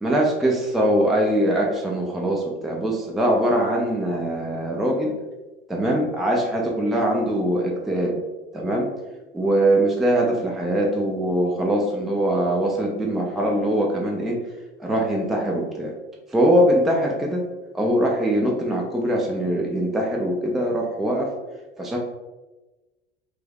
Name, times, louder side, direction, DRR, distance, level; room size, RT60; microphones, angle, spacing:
voice 1, 0.0-5.1 5.7-8.2 8.5-8.9 9.3-14.4 14.8-15.9 16.3-17.4 17.7-21.3 21.8-22.0, right 1 dB, ahead, -1 dB, 0.3 m, -22 dB
2.6 x 2.4 x 3.4 m, 1.1 s
figure-of-eight pair, 75°, 29 cm